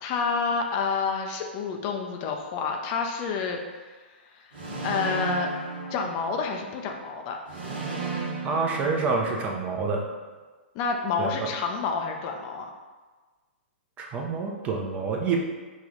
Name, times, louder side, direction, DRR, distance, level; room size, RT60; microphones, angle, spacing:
voice 1, 0.0-4.0 4.3-4.5 4.8-5.5 5.9-7.4 10.7-12.7, left 5 dB, 35° left, 3 dB, 0.5 m, -29 dB
sound 1, 4.5-6.7 7.5-9.7, right 3 dB, 60° right, 1.1 m, -34 dB
voice 2, 8.4-10.1 11.2-11.5 14.0-15.4, right 4 dB, 25° right, 1 dB, 0.6 m, -27 dB
5.1 x 2.4 x 3.8 m, 1.3 s
figure-of-eight pair, 115°, 6 cm